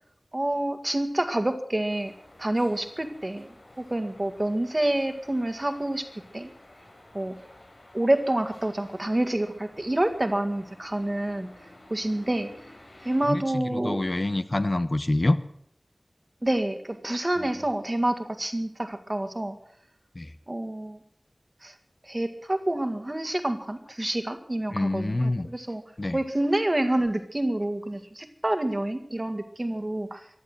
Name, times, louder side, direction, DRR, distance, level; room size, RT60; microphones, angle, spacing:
voice 1, 0.3-2.1 2.4-6.1 6.3-6.5 7.1-7.4 7.9-11.5 11.9-12.5 13.0-14.0 16.4-19.6 20.5-21.0 21.6-21.7 22.0-25.8 26.1-30.3, right 1 dB, 35° right, 8 dB, 1.9 m, -28 dB
sound 1, 1.9-13.3, left 1 dB, 75° left, 4.2 m, -52 dB
voice 2, 13.3-15.4 20.1-20.3 24.7-25.5 26.0-26.2, left 2 dB, 50° left, 10 dB, 1.0 m, -26 dB
15.5 x 11.0 x 7.8 m, 0.66 s
wide cardioid pair, 50°, 0 cm